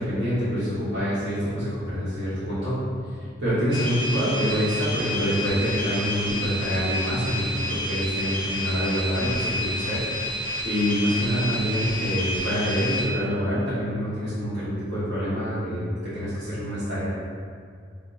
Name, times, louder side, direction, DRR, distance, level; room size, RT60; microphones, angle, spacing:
voice 1, 0.0-2.8 3.4-17.1, equal, 75° right, -14 dB, 1.4 m, -26 dB
sound 1, 3.7-13.1, left 1 dB, 25° right, 0.8 m, -30 dB
5.1 x 2.2 x 4.0 m, 2.1 s
head